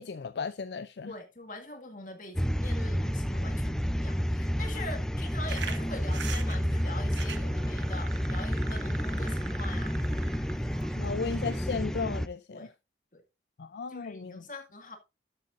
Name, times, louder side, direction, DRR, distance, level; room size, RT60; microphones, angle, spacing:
voice 1, 0.0-1.1 11.0-12.7 13.6-14.4, left 5 dB, 70° left, 0.5 m, -35 dB
voice 2, 1.0-10.4 12.5-12.7 13.1-13.2 13.9-15.0, left 2 dB, 45° left, 2.0 m, -43 dB
sound 1, 2.4-12.3, equal, 5° left, 0.4 m, -30 dB
sound 2, 5.5-11.6, right 6 dB, 85° right, 1.1 m, -43 dB
13.0 x 7.7 x 2.5 m
head